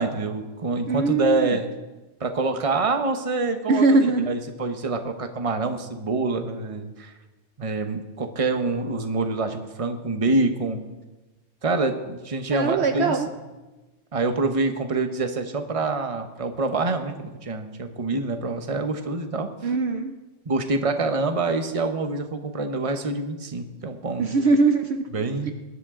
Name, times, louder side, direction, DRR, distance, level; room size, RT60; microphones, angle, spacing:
voice 1, 0.0-1.7 2.2-4.0 4.3-7.1 7.6-10.8 11.6-13.2 14.1-19.7 20.5-24.3 25.1-25.5, right 3 dB, 30° right, 7 dB, 1.0 m, -26 dB
voice 2, 0.9-1.6 3.7-4.3 12.5-13.3 19.6-20.1 24.2-25.0, right 3 dB, 60° right, 6 dB, 0.9 m, -21 dB
20.5 x 11.0 x 3.8 m, 1.1 s
omnidirectional pair, 1.3 m